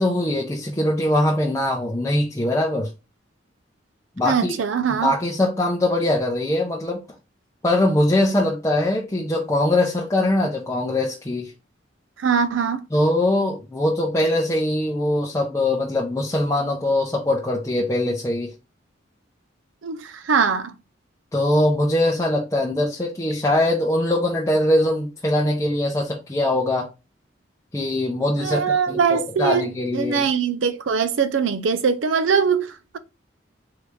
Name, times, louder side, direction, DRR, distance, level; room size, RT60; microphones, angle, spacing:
voice 1, 0.0-2.9 4.2-4.6 4.9-7.0 7.6-11.5 12.9-18.5 21.3-26.9 27.7-30.3, left 1 dB, 15° left, 0.6 m, -22 dB
voice 2, 4.2-5.1 12.2-12.8 19.8-20.7 28.4-33.0, right 6 dB, 90° right, 0.5 m, -22 dB
3.8 x 3.4 x 3.1 m
head